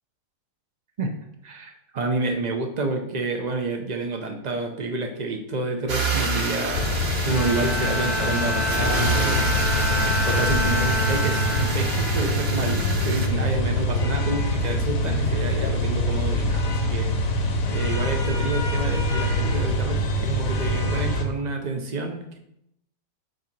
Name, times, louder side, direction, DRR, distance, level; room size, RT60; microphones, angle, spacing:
voice 1, 1.4-7.0 7.3-10.0 10.3-22.4, right 3 dB, 75° right, 3 dB, 0.4 m, -29 dB
sound 1, 5.9-13.3, right 3 dB, 45° right, 1.0 m, -28 dB
sound 2, 6.7-21.2, left 1 dB, 60° left, 1.3 m, -25 dB
Bowed string instrument, 7.3-12.8, left 2 dB, 30° left, 0.6 m, -28 dB
7.8 x 2.8 x 5.9 m, 0.78 s
omnidirectional pair, 1.7 m